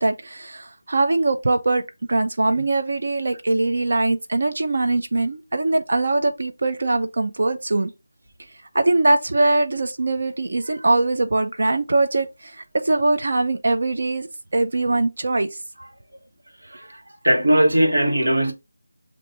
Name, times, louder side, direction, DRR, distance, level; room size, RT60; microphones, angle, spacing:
voice 1, 0.0-1.8 2.1-7.9 8.7-14.3 14.5-15.5, right 2 dB, 50° right, 0.4 m, -22 dB
voice 2, 16.7-17.0 17.2-18.5, right 1 dB, 90° right, 1.3 m, -19 dB
5.8 x 2.6 x 2.7 m
figure-of-eight pair, 175°, 0 cm